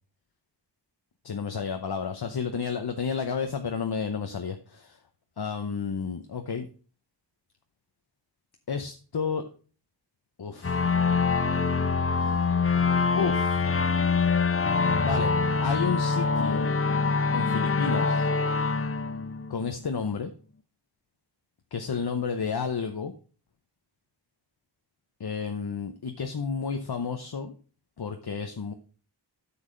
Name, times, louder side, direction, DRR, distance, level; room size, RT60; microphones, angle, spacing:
voice 1, 1.2-5.0 5.4-6.7 8.7-9.4 10.4-10.9 12.2-12.4 13.1-13.7 15.0-15.3 15.6-16.7 17.3-18.3 19.5-20.3 21.7-23.1 25.2-27.5 28.0-28.7, left 6 dB, 60° left, 6 dB, 0.9 m, -31 dB
sound 1, 10.6-20.0, left 4 dB, 30° left, 0.6 m, -25 dB
8.3 x 7.1 x 3.8 m, 0.37 s
wide cardioid pair, 60°, 43 cm